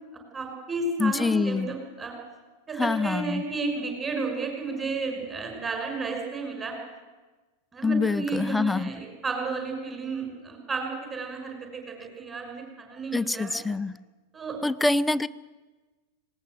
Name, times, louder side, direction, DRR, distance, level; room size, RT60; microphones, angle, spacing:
voice 1, 0.3-2.2 2.7-6.8 7.7-13.6 14.3-14.6, right 3 dB, 15° right, 3 dB, 6.0 m, -32 dB
voice 2, 1.0-1.7 2.8-3.4 7.8-8.9 13.1-14.0 14.6-15.3, left 3 dB, 5° left, 14 dB, 0.6 m, -25 dB
19.5 x 18.5 x 7.9 m, 1.3 s
figure-of-eight pair, 90°, 0 cm